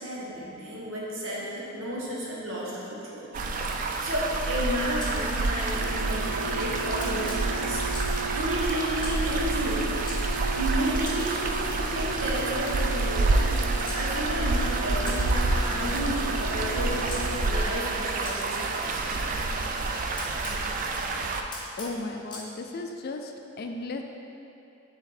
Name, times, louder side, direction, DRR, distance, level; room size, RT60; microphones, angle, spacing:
voice 1, 0.0-3.3 4.0-7.8 8.3-9.9 10.5-19.3, equal, 65° right, -5 dB, 1.2 m, -32 dB
sound 1, 3.3-21.4, right 3 dB, 40° right, 0.3 m, -28 dB
Camera, 5.0-6.2 7.0-8.2 9.0-10.2 11.0-14.0 15.0-17.2 18.2-20.6 21.5-22.5, left 3 dB, 20° left, 0.8 m, -45 dB
sound 2, 5.7-17.4, right 3 dB, 10° right, 0.8 m, -36 dB
voice 2, 21.8-24.0, left 2 dB, 45° left, 4 dB, 0.3 m, -35 dB
7.0 x 3.5 x 3.9 m, 2.8 s
head